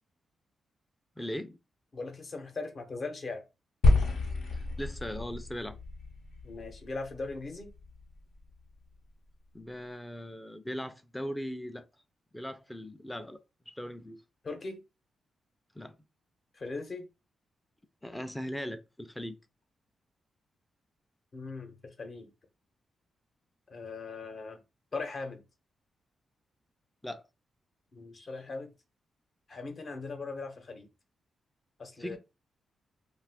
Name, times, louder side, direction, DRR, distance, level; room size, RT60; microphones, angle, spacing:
voice 1, 1.2-1.6 4.5-5.8 9.5-11.8 12.3-13.4 13.7-14.2 15.8-16.0 18.0-19.4 27.0-27.2 32.0-32.2, equal, 10° left, 0.4 m, -39 dB
voice 2, 1.9-3.4 6.4-7.7 14.4-14.8 16.5-17.1 21.3-22.3 23.7-24.6 24.9-25.4 27.9-28.7 29.5-30.9 31.8-32.2, left 3 dB, 45° left, 0.8 m, -39 dB
sound 1, 3.8-8.2, left 2 dB, 80° left, 0.8 m, -29 dB
2.5 x 2.4 x 3.5 m
cardioid pair, 100°, 0 cm